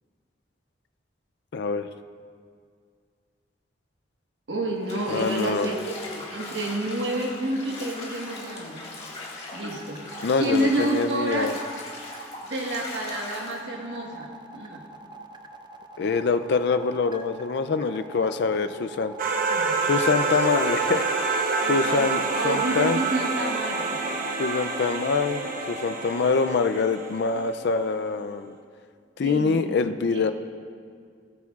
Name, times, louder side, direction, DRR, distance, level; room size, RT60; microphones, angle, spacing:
voice 1, 1.5-1.9 5.1-5.7 10.2-11.5 16.0-19.1 19.8-21.1 21.7-23.0 24.4-28.6 29.2-30.3, left 4 dB, 65° left, 10 dB, 0.4 m, -25 dB
voice 2, 4.5-8.9 9.5-11.6 12.4-14.9 19.5-19.8 21.6-24.0 29.2-29.7 30.1-30.3, right 1 dB, 70° right, 0 dB, 1.4 m, -29 dB
Bathtub (filling or washing), 4.8-13.6, left 2 dB, 35° left, 1.8 m, -39 dB
sound 1, 9.5-20.9, right 2 dB, 25° right, 0.5 m, -45 dB
sound 2, 19.2-27.8, right 4 dB, 50° right, 0.9 m, -27 dB
19.0 x 8.4 x 2.4 m, 2.1 s
head